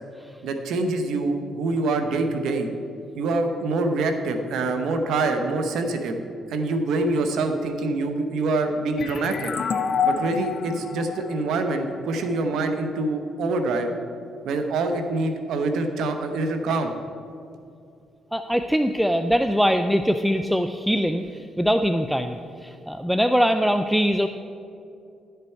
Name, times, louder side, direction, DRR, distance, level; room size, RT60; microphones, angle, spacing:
voice 1, 0.4-2.7 3.1-6.2 6.5-9.5 10.0-13.9 14.4-16.9, right 2 dB, 80° right, 6 dB, 0.9 m, -25 dB
sound 1, 9.0-12.4, left 6 dB, 50° left, 0.5 m, -28 dB
voice 2, 18.3-24.3, equal, ahead, 8 dB, 0.3 m, -22 dB
11.5 x 6.8 x 4.5 m, 2.5 s
cardioid pair, 90°, 0 cm